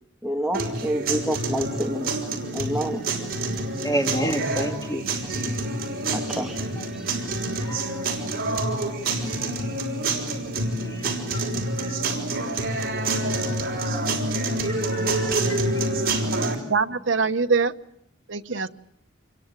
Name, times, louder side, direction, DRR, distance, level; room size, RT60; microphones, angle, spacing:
voice 1, 0.2-2.1 2.5-3.0 6.1-6.6 6.9-7.1 7.6-7.7, right 1 dB, 5° right, 2 dB, 1.7 m, -28 dB
sound 1, 0.5-16.6, right 2 dB, 50° right, 5.9 m, -27 dB
voice 2, 3.8-5.0 6.8-6.9 7.7-8.0 8.5-8.8 10.8-11.4 13.5-13.6 14.6-15.6, equal, 20° left, 5 dB, 2.6 m, -31 dB
voice 3, 16.3-17.7 18.3-18.7, right 4 dB, 70° right, 8 dB, 1.2 m, -24 dB
28.0 x 23.0 x 9.0 m, 0.75 s
head